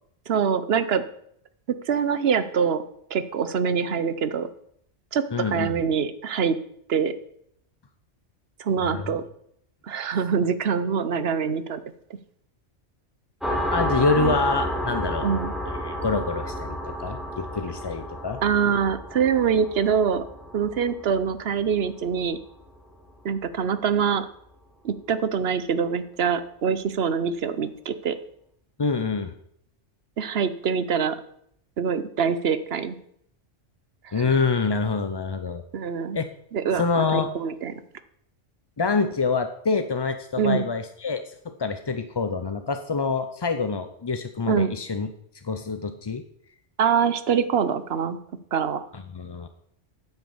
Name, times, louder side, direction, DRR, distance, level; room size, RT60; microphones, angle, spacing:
voice 1, 0.3-1.0 1.9-2.8 3.1-4.5 5.1-6.6 6.9-7.1 8.6-9.2 9.8-11.8 14.2-14.3 15.2-15.5 18.4-20.2 20.5-22.4 23.2-24.3 24.8-28.2 30.2-31.2 31.8-33.0 34.0-34.2 35.7-36.2 36.5-37.7 40.4-40.7 44.5-44.7 46.8-48.2 48.5-48.8, right 6 dB, 60° right, 13 dB, 1.0 m, -24 dB
voice 2, 5.3-5.8 8.8-9.2 13.7-15.3 15.8-18.4 28.8-29.3 34.1-35.6 36.1-36.2 36.7-37.3 38.8-45.1 45.4-46.2 48.9-49.5, left 4 dB, 35° left, 8 dB, 0.4 m, -26 dB
sound 1, 13.4-22.7, equal, ahead, 2.5 m, -31 dB
9.3 x 8.1 x 7.1 m, 0.71 s
omnidirectional pair, 1.2 m